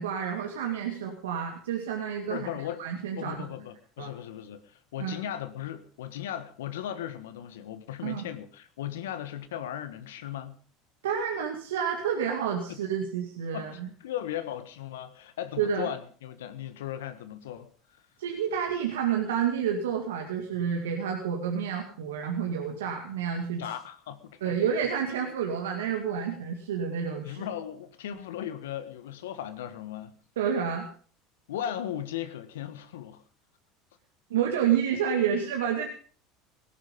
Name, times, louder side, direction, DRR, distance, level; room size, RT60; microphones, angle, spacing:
voice 1, 0.0-2.5 2.8-3.4 4.0-4.1 5.0-5.2 8.0-8.2 11.0-13.9 15.6-15.9 18.2-23.6 24.4-27.4 30.4-30.9 34.3-35.9, right 8 dB, 85° right, 2.1 m, -29 dB
voice 2, 2.3-2.8 3.2-10.6 12.7-12.8 13.5-17.7 17.9-18.0 23.6-24.6 27.2-30.2 31.5-33.2, left 10 dB, 85° left, 1.4 m, -37 dB
18.0 x 12.0 x 5.3 m
hypercardioid pair, 85°, 0 cm